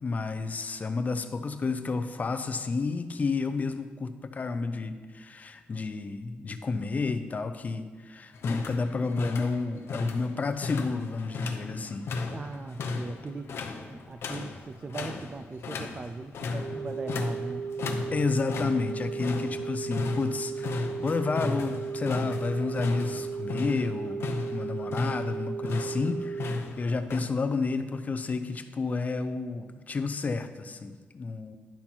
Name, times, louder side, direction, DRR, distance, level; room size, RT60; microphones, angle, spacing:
voice 1, 0.0-12.1 18.1-31.6, left 4 dB, 40° left, 10 dB, 0.6 m, -31 dB
sound 1, 8.3-27.2, left 4 dB, 75° left, 0.7 m, -36 dB
voice 2, 12.2-13.6 13.9-17.7, right 3 dB, 30° right, 8 dB, 0.4 m, -39 dB
sound 2, 16.5-26.5, right 5 dB, 70° right, 2.2 m, -35 dB
10.5 x 5.7 x 4.4 m, 1.5 s
wide cardioid pair, 115°, 4 cm